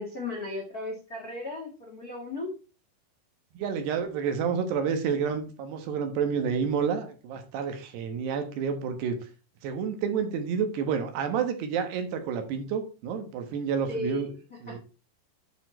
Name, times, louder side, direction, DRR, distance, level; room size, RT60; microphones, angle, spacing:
voice 1, 0.0-2.5 13.9-14.3 14.7-14.8, left 2 dB, 70° left, -1 dB, 0.8 m, -35 dB
voice 2, 3.5-9.2 9.6-14.3 14.6-14.8, right 6 dB, 75° right, 6 dB, 3.3 m, -29 dB
9.4 x 5.5 x 4.4 m, 0.33 s
omnidirectional pair, 5.1 m